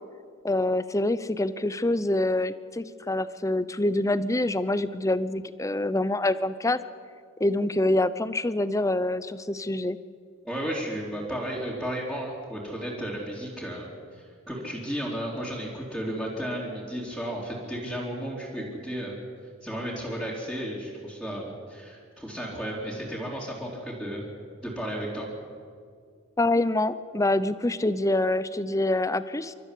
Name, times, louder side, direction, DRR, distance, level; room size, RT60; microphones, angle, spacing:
voice 1, 0.4-6.8 7.4-10.0 26.4-29.5, left 1 dB, 15° left, 14 dB, 0.6 m, -26 dB
voice 2, 10.4-19.2 19.6-24.3 24.6-25.3, equal, ahead, -8 dB, 3.4 m, -33 dB
28.5 x 13.5 x 8.5 m, 2.1 s
head